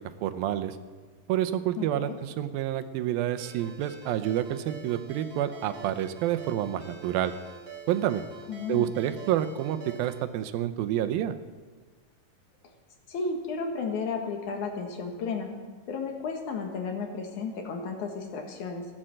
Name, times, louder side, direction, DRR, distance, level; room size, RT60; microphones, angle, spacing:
voice 1, 0.2-0.8 1.3-7.3 7.9-8.2 8.7-11.3, right 11 dB, 90° right, 9 dB, 2.6 m, -28 dB
voice 2, 1.8-2.2 8.5-8.9 13.1-15.5 15.9-18.9, left 4 dB, 65° left, 3 dB, 2.8 m, -33 dB
Ringtone, 3.4-10.2, right 4 dB, 30° right, 1.2 m, -46 dB
16.5 x 10.0 x 7.7 m, 1.4 s
omnidirectional pair, 4.1 m